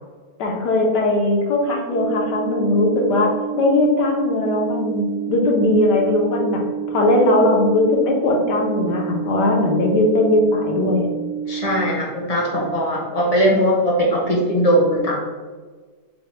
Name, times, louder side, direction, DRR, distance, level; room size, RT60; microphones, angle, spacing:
voice 1, 0.4-11.1, left 2 dB, 80° left, 0 dB, 1.4 m, -19 dB
sound 1, 1.9-11.9, right 8 dB, 75° right, 1.2 m, -29 dB
voice 2, 11.5-15.2, equal, 40° left, -2 dB, 0.5 m, -19 dB
6.5 x 2.2 x 3.2 m, 1.4 s
omnidirectional pair, 1.8 m